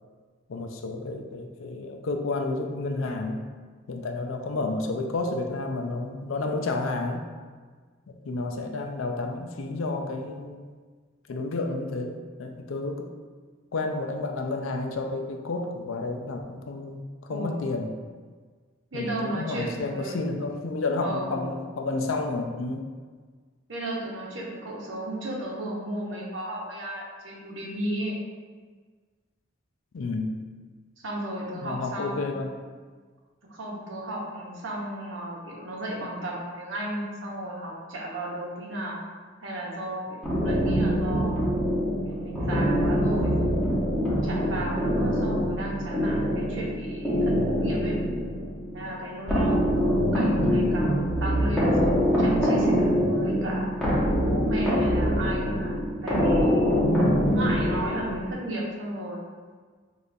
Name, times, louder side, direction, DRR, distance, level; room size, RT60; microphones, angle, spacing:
voice 1, 0.5-3.4 3.9-7.2 8.1-10.6 11.3-13.1 13.7-17.9 18.9-22.9 29.9-30.4 31.5-32.5 45.9-46.3 50.4-50.8, left 3 dB, 80° left, 4 dB, 0.5 m, -31 dB
voice 2, 17.3-17.6 18.9-20.2 21.0-21.5 23.7-28.2 31.0-32.3 33.5-39.0 39.4-41.5 42.1-43.3 44.0-48.0 48.7-56.8 57.2-59.2, right 1 dB, 70° right, -3 dB, 1.0 m, -34 dB
sound 1, 40.2-58.3, equal, 5° left, 1.0 m, -24 dB
6.3 x 2.5 x 2.6 m, 1.5 s
head